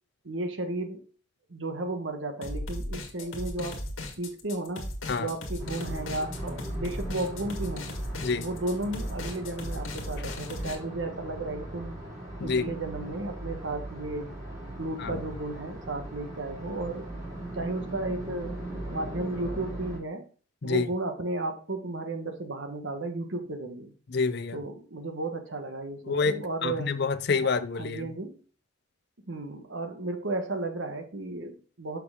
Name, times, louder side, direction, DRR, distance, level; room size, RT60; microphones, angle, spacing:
voice 1, 0.2-1.0 1.5-3.8 4.2-4.9 5.2-7.9 8.4-12.0 12.4-14.3 14.8-17.1 17.6-18.6 18.9-20.3 20.6-23.9 24.5-27.0 27.7-28.4 29.3-32.0, right 2 dB, 70° right, 1.3 m, -34 dB
sound 1, 2.4-10.8, left 1 dB, 80° left, 1.6 m, -36 dB
sound 2, 5.6-20.0, right 1 dB, 15° right, 2.6 m, -39 dB
voice 2, 12.4-12.7 15.0-15.2 20.6-20.9 24.1-24.6 26.1-28.1, left 4 dB, 55° left, 0.5 m, -27 dB
6.5 x 5.8 x 3.6 m
head